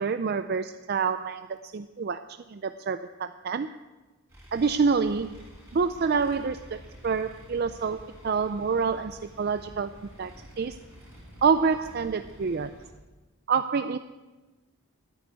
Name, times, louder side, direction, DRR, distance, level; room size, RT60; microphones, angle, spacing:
voice 1, 0.0-3.7 4.5-5.4 5.7-9.9 10.2-10.3 10.6-10.8 11.4-12.8 13.5-14.0, right 5 dB, 45° right, 10 dB, 0.4 m, -27 dB
sound 1, 4.3-12.7, equal, 15° right, 5.7 m, -51 dB
sound 2, 4.7-12.9, equal, 85° left, 4.5 m, -52 dB
15.0 x 9.3 x 8.0 m, 1.2 s
head